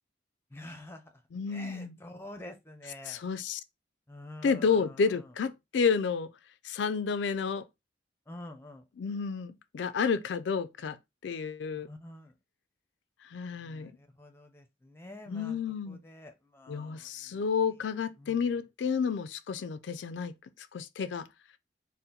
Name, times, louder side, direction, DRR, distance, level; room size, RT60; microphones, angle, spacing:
voice 1, 0.5-1.2 1.5-3.2 4.1-5.3 8.3-8.8 11.8-12.3 13.6-15.6 15.9-17.4 18.2-18.4, left 1 dB, 15° left, 0.5 m, -48 dB
voice 2, 1.3-1.9 3.1-3.6 4.4-6.3 6.6-7.6 9.0-11.0 11.2-11.9 13.2-13.9 15.3-16.0 16.7-20.3 20.6-21.3, left 5 dB, 75° left, 0.4 m, -30 dB
4.2 x 2.1 x 3.7 m
head